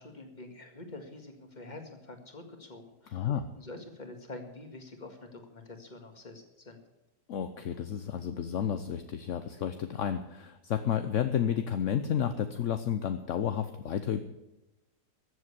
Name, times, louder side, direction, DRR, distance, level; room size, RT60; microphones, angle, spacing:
voice 1, 0.0-3.3 3.5-6.8, left 2 dB, 25° left, 5 dB, 2.0 m, -46 dB
voice 2, 3.1-3.5 7.3-14.2, left 9 dB, 55° left, 9 dB, 0.9 m, -31 dB
14.5 x 7.8 x 9.7 m, 0.94 s
omnidirectional pair, 1.9 m